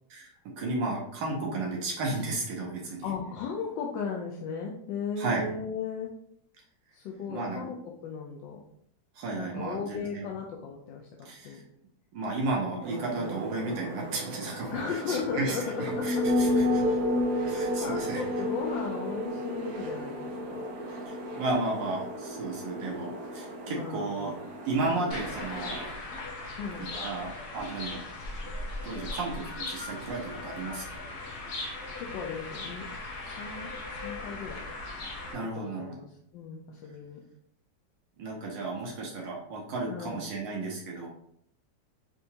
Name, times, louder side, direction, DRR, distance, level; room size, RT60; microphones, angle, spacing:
voice 1, 0.1-3.1 5.2-5.4 7.3-7.6 9.1-10.3 11.2-11.6 12.1-17.0 17.5-18.2 20.9-24.3 24.6-25.8 27.0-28.0 28.8-31.0 35.3-36.0 38.2-41.1, right 2 dB, 80° right, -2 dB, 1.5 m, -33 dB
voice 2, 2.8-6.1 6.9-8.7 9.4-11.1 11.4-11.6 14.7-16.5 17.3-20.7 23.7-24.4 26.6-26.9 32.0-32.9 33.2-34.7 35.6-37.2 39.9-40.2, left 5 dB, 85° left, -1 dB, 1.3 m, -36 dB
sound 1, 12.8-25.9, left 1 dB, 65° right, 1.1 m, -32 dB
sound 2, 25.1-35.3, left 2 dB, 60° left, 1.4 m, -38 dB
5.5 x 2.8 x 2.7 m, 0.69 s
omnidirectional pair, 2.0 m